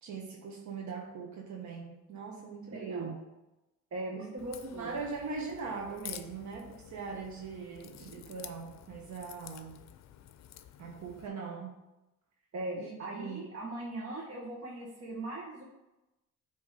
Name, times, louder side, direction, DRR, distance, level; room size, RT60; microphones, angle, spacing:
voice 1, 0.0-3.1 4.1-9.8 10.8-11.7 12.8-13.4, right 5 dB, 70° right, -1 dB, 1.2 m, -41 dB
voice 2, 2.7-3.1 3.9-4.9 12.5-15.6, right 2 dB, 50° right, -4 dB, 1.5 m, -39 dB
Crack, 4.4-11.3, left 11 dB, 65° left, 0.5 m, -50 dB
8.4 x 3.1 x 4.9 m, 0.99 s
cardioid pair, 90°, 30 cm